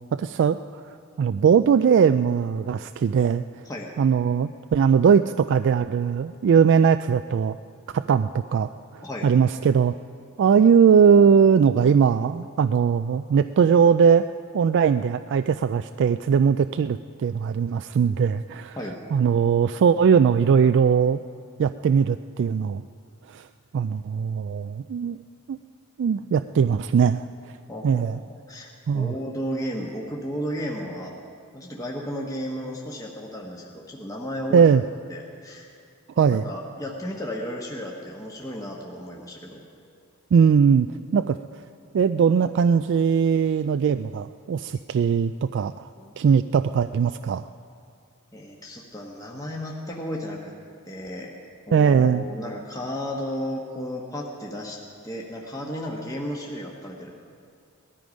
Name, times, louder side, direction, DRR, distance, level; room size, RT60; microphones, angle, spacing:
voice 1, 0.1-0.6 0.9-3.4 4.0-7.6 7.9-9.9 10.4-14.3 14.5-18.8 19.1-21.2 21.6-22.8 23.3-23.5 23.7-25.2 25.5-25.6 26.0-27.3 27.8-28.2 28.9-29.1 34.5-34.8 36.2-36.4 40.3-41.4 41.9-45.9 46.2-47.4 51.7-52.2, right 6 dB, 55° right, 10 dB, 0.3 m, -20 dB
voice 2, 27.7-28.7 28.9-31.1 31.5-34.8 35.1-35.8 36.2-39.6 44.7-44.8 46.0-46.1 48.3-50.5 50.8-51.3 51.7-57.1, equal, 15° left, -1 dB, 1.2 m, -34 dB
18.5 x 13.0 x 5.2 m, 2.3 s
head